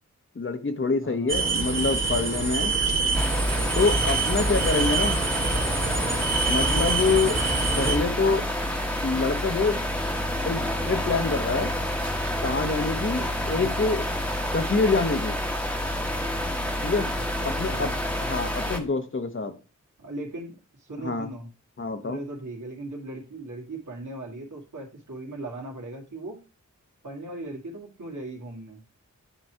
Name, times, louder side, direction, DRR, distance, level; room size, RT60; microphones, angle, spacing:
voice 1, 0.4-2.7 3.7-5.2 6.4-7.4 7.8-8.4 9.0-9.8 10.4-11.7 12.4-14.0 14.5-15.4 16.8-17.1 17.4-17.9 18.2-19.5 21.0-21.3 21.8-22.2, left 4 dB, 40° left, 8 dB, 0.9 m, -26 dB
voice 2, 1.0-1.4 13.5-13.8 17.2-17.9 20.0-21.5 22.0-26.4 27.0-28.8, right 2 dB, 75° right, -2 dB, 2.0 m, -38 dB
sound 1, 1.3-8.0, right 3 dB, 40° right, 1.6 m, -25 dB
sound 2, 3.1-18.8, left 1 dB, 5° left, 1.2 m, -29 dB
9.0 x 3.1 x 4.6 m, 0.33 s
cardioid pair, 50°, 30 cm